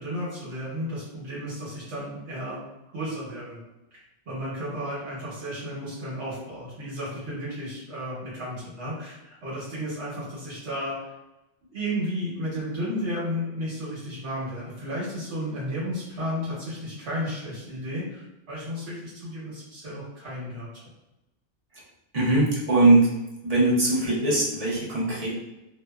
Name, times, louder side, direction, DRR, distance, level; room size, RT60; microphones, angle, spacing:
voice 1, 0.0-2.6 2.9-3.6 3.9-11.1 11.7-20.8, equal, 75° right, -7 dB, 1.2 m, -33 dB
voice 2, 22.1-23.1 23.4-25.3, right 2 dB, 45° right, -5 dB, 0.6 m, -21 dB
2.8 x 2.0 x 2.2 m, 0.96 s
omnidirectional pair, 1.1 m